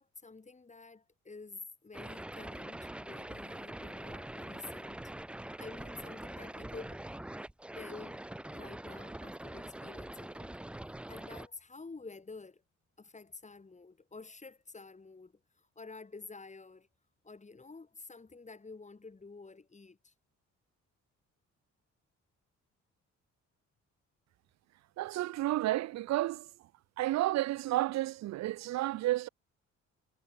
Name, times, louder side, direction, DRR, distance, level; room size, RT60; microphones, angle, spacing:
voice 1, 0.0-5.0 5.6-7.0 7.8-8.2 8.5-10.5 11.1-12.6 13.0-15.3 15.8-16.9 17.2-20.1, left 3 dB, 25° left, 2.9 m, -49 dB
sound 1, 1.9-11.5, right 1 dB, 5° right, 0.4 m, -44 dB
voice 2, 25.0-26.5 27.0-29.3, right 16 dB, 65° right, 0.5 m, -31 dB
cardioid pair, 90°, 30 cm